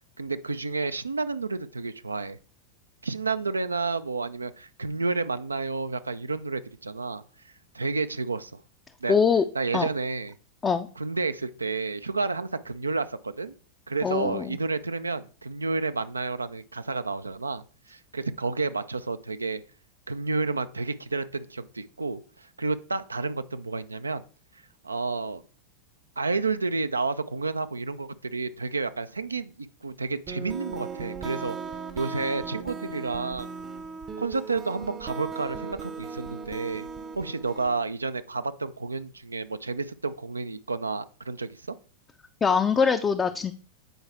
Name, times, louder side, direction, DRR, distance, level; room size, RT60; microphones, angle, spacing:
voice 1, 0.2-2.4 3.0-8.6 9.0-9.2 9.5-10.3 11.0-13.6 13.9-19.6 20.1-24.2 24.8-25.4 26.2-31.6 32.0-33.5 34.2-36.9 37.2-41.7, right 3 dB, 80° right, 0.4 m, -30 dB
voice 2, 9.1-9.4 9.7-9.9 10.6-10.9 14.0-14.5 42.4-43.5, left 6 dB, 20° left, 0.5 m, -23 dB
sound 1, 30.3-37.8, right 5 dB, 25° right, 0.7 m, -38 dB
7.9 x 4.7 x 4.3 m
figure-of-eight pair, 90°, 0 cm